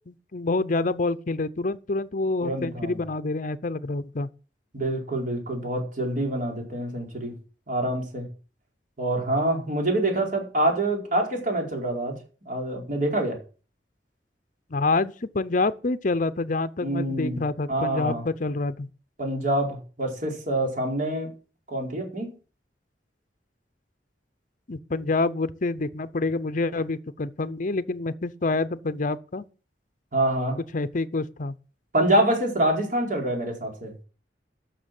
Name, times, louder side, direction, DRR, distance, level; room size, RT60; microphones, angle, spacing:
voice 1, 0.1-4.3 14.7-18.9 24.7-29.4 30.7-31.5, left 3 dB, 50° left, 0.7 m, -27 dB
voice 2, 2.4-3.0 4.7-7.3 7.7-8.3 9.0-12.2 12.5-13.4 16.8-17.4 17.7-18.2 19.2-21.3 21.7-22.3 30.1-30.6 31.9-34.1, right 1 dB, 50° right, 4.6 m, -26 dB
12.0 x 6.8 x 7.7 m
head